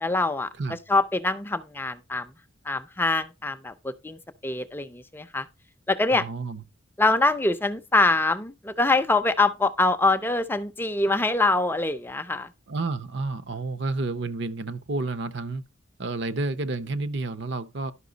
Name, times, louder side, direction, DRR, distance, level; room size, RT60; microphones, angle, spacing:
voice 1, 0.0-0.5 0.9-2.3 2.7-5.5 5.9-6.2 7.0-12.5, left 2 dB, 10° left, 0.4 m, -24 dB
voice 2, 6.1-6.6 12.7-15.6 16.0-17.9, right 3 dB, 55° right, 0.7 m, -30 dB
11.5 x 5.7 x 3.9 m
head